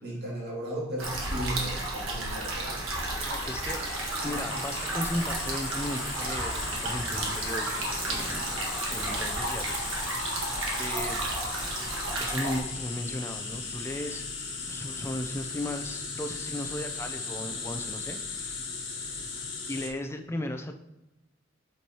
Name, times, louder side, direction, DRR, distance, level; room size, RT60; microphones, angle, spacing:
voice 1, 0.0-2.9, right 1 dB, 55° right, -4 dB, 2.3 m, -36 dB
sound 1, 1.0-12.6, right 2 dB, 80° right, 1.6 m, -32 dB
sound 2, 2.6-19.9, left 4 dB, 60° left, 1.4 m, -37 dB
sound 3, 2.9-9.2, equal, 5° right, 1.1 m, -48 dB
voice 2, 3.2-3.8 4.2-8.4 8.9-10.5 10.8-11.2 12.2-14.3 14.7-18.7 19.3-19.4 19.7-20.7, left 1 dB, 10° left, 5 dB, 0.4 m, -36 dB
8.3 x 4.6 x 2.9 m, 0.96 s
head